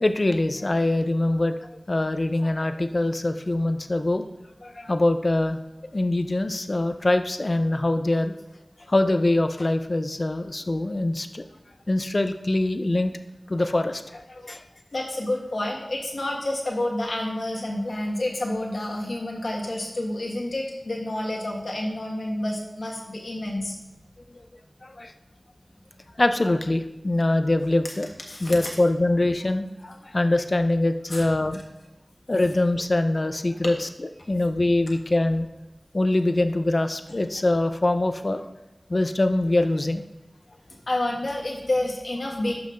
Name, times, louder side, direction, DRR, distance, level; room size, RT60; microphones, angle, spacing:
voice 1, 0.0-4.3 4.6-5.6 5.9-8.3 8.9-11.4 11.9-13.1 13.5-14.6 24.3-24.4 24.8-25.1 26.2-28.1 28.4-31.6 32.3-35.5 35.9-38.4 38.9-40.0, left 2 dB, 50° left, 8 dB, 0.5 m, -23 dB
voice 2, 14.9-23.8 27.8-27.9 28.3-28.7 31.1-31.3 40.9-42.5, left 1 dB, 80° left, -2 dB, 1.5 m, -29 dB
11.5 x 5.6 x 2.5 m, 0.99 s
wide cardioid pair, 60°, 0 cm